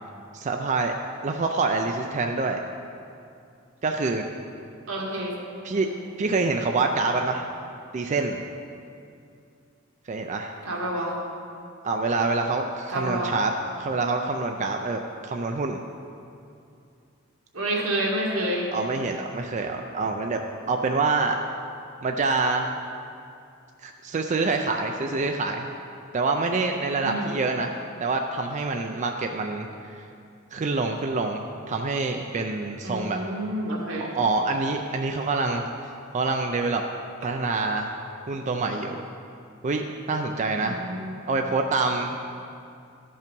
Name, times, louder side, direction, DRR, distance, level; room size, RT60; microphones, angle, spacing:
voice 1, 0.3-0.9 1.2-2.6 3.8-4.2 5.6-5.9 6.2-7.5 7.9-8.4 10.1-10.5 11.8-13.5 13.8-15.8 18.7-20.4 20.7-21.4 22.0-22.7 23.8-25.7 26.1-27.7 28.0-29.7 30.5-33.2 34.0-35.7 36.1-36.8 37.2-37.9 38.3-39.0 39.6-40.8 41.3-42.2, right 3 dB, 35° right, 3 dB, 0.4 m, -26 dB
voice 2, 4.9-5.3 5.7-6.0 10.6-11.1 12.9-13.3 17.5-18.7 27.0-27.4 32.8-34.1 40.6-41.2, right 1 dB, 85° right, -3 dB, 1.9 m, -29 dB
12.5 x 5.5 x 5.2 m, 2.5 s
head